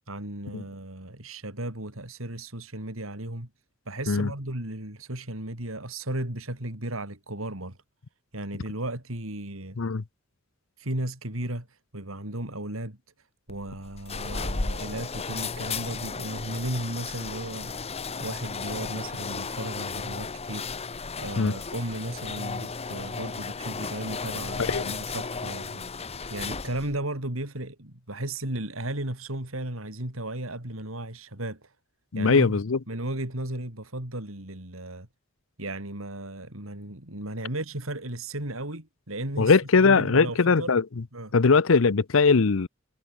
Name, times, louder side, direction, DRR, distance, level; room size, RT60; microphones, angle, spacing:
voice 1, 0.1-3.5 3.9-7.8 8.3-9.8 10.8-13.0 13.5-17.9 18.2-25.8 26.3-31.7 32.1-32.6 32.9-35.1 35.6-40.7 41.1-41.3, right 1 dB, 85° right, 4.5 m, -35 dB
sound 1, 13.5-27.0, left 4 dB, 30° left, 1.0 m, -34 dB
voice 2, 24.6-24.9 32.1-32.8 39.4-40.8 41.3-42.7, left 4 dB, 75° left, 0.7 m, -20 dB
head